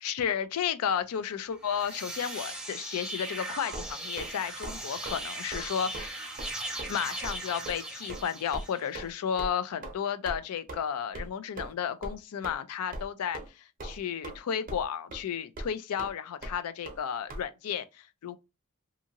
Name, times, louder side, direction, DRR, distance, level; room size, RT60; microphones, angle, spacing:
voice 1, 0.0-6.3 6.9-18.4, left 8 dB, 80° left, 0.4 m, -33 dB
sound 1, 1.5-9.0, right 2 dB, 5° right, 0.3 m, -39 dB
sound 2, 3.7-4.3 4.6-4.8 5.0-5.2 5.5-5.7 5.9-6.1 6.4-6.5 6.8-6.9 7.2-7.4 7.7-7.8 8.1-8.2 8.5-8.6 8.9-9.1 9.4-9.5 9.8-9.9 10.3-10.4 10.7-10.8 11.1-11.3 11.6-11.7 12.0-12.2 12.4-12.5 12.9-13.1 13.3-13.5 13.8-14.4 14.7-14.9 15.1-15.2 15.6-15.7 16.0-16.1 16.4-16.5 16.9-17.0 17.3-17.4, right 1 dB, 40° right, 0.7 m, -39 dB
2.7 x 2.5 x 2.7 m
head